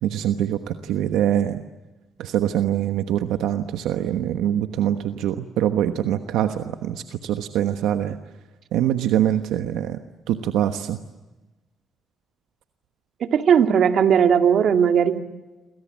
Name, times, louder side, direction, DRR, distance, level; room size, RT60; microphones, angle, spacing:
voice 1, 0.0-1.6 2.2-8.2 8.7-10.0 10.3-11.0, right 11 dB, 90° right, 7 dB, 1.2 m, -24 dB
voice 2, 13.2-15.2, right 8 dB, 65° right, 6 dB, 2.2 m, -17 dB
28.0 x 24.5 x 7.4 m, 1.1 s
cardioid pair, 90°, 0 cm